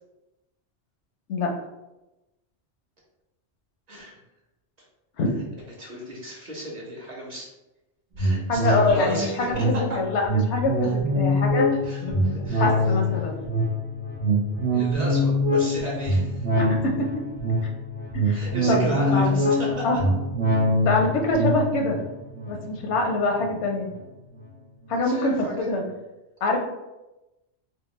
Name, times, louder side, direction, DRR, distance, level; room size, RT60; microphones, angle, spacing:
voice 1, 5.8-7.5 8.2-9.6 10.8-10.9 11.8-12.7 14.7-16.5 18.3-19.8 24.9-25.5, equal, 40° right, -3 dB, 0.8 m, -34 dB
sound 1, 8.2-23.9 24.3-24.4, equal, 90° right, 1.2 m, -24 dB
voice 2, 8.5-11.7 12.0-12.3 12.6-13.4 16.6-17.1 17.6-17.7 18.1-19.3 19.8-20.0 20.8-22.0 22.5-23.9 24.9-25.8 26.4-26.6, left 2 dB, 85° left, 2 dB, 0.9 m, -25 dB
3.4 x 2.2 x 3.1 m, 0.98 s
omnidirectional pair, 1.2 m